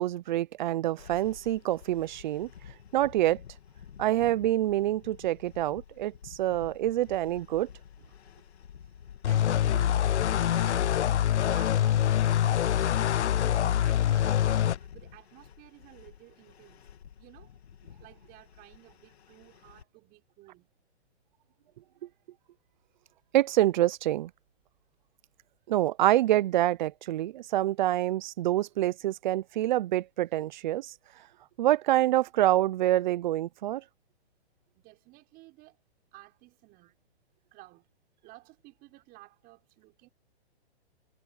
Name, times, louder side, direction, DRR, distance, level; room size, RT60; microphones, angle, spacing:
voice 1, 0.0-2.5 2.9-3.4 4.0-7.7 23.3-24.3 25.7-30.9 31.6-33.8, right 14 dB, 45° right, 0.8 m, -26 dB
sound 1, 1.0-19.8, left 8 dB, 70° left, 3.2 m, -51 dB
voice 2, 8.0-8.3 9.3-14.6 14.9-16.9 17.2-17.5 18.0-20.7 34.7-35.8 36.1-36.9 37.5-37.9 38.2-40.1, right 21 dB, 30° right, 5.0 m, -54 dB
sound 2, 9.2-14.8, left 10 dB, 85° left, 0.6 m, -25 dB
hypercardioid pair, 140°, 33 cm